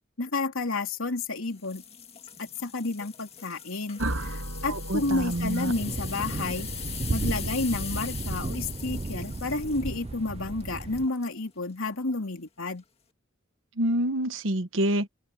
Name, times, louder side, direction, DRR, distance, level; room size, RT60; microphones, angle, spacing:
voice 1, 0.2-1.8 2.4-6.7 7.1-12.8, left 3 dB, 85° left, 2.9 m, -31 dB
sound 1, 1.5-11.4 11.9-12.1 12.7-12.8, left 8 dB, 30° left, 1.9 m, -42 dB
sound 2, 4.0-8.7, right 1 dB, 85° right, 6.7 m, -37 dB
voice 2, 4.7-5.7 13.8-15.1, right 1 dB, 65° right, 1.2 m, -27 dB
Thunder, 5.0-11.1, right 2 dB, 30° right, 0.5 m, -34 dB
open air
head